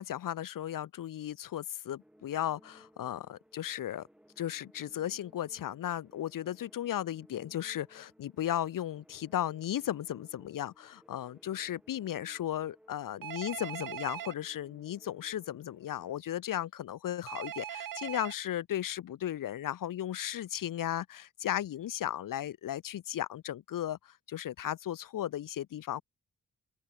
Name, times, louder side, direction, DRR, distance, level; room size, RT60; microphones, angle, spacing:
voice 1, 0.0-4.1 4.4-26.0, left 11 dB, 70° left, 0.7 m, -35 dB
sound 1, 2.0-16.2, equal, 5° right, 2.9 m, -62 dB
Telephone, 13.2-14.3 17.3-18.3, right 10 dB, 80° right, 1.0 m, -40 dB
open air
wide cardioid pair, 165°, 33 cm